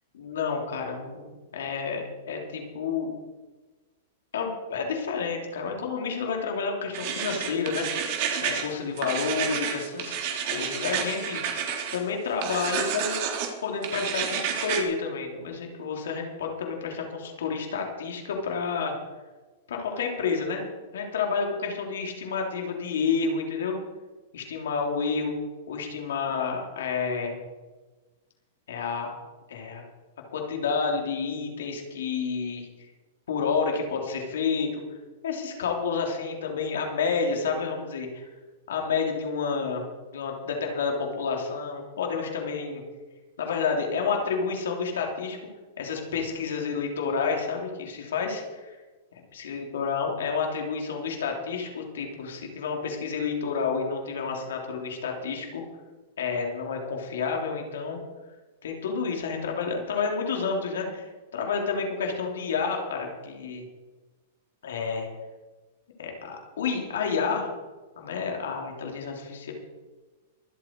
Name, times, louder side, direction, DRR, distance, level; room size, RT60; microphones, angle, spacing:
voice 1, 0.1-3.1 4.3-10.1 10.5-13.2 13.6-18.9 19.7-20.6 20.9-23.8 24.3-25.3 25.7-27.4 28.7-29.1 29.5-29.8 30.3-32.9 33.3-34.8 35.2-38.3 38.7-39.8 40.1-42.8 43.4-45.4 45.8-48.8 49.1-55.6 56.2-58.0 58.6-61.1 61.3-63.7 64.6-65.1 66.0-67.5 68.0-69.5, left 5 dB, 80° left, 1 dB, 3.8 m, -30 dB
sound 1, 6.9-8.7 9.0-12.0 12.4-13.5 13.8-14.8, right 8 dB, 50° right, 3.4 m, -30 dB
24.5 x 8.3 x 4.8 m, 1.3 s
hypercardioid pair, 135°, 0 cm